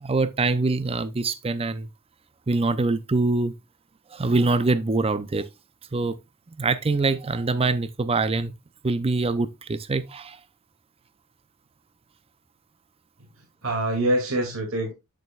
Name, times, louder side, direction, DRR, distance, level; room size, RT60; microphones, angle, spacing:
voice 1, 0.0-1.9 2.5-3.5 4.1-5.5 5.9-6.2 6.6-8.5 8.8-10.4, right 3 dB, 30° right, 0.5 m, -24 dB
voice 2, 13.2-14.9, right 1 dB, 75° right, 2.4 m, -26 dB
8.9 x 6.5 x 2.3 m
head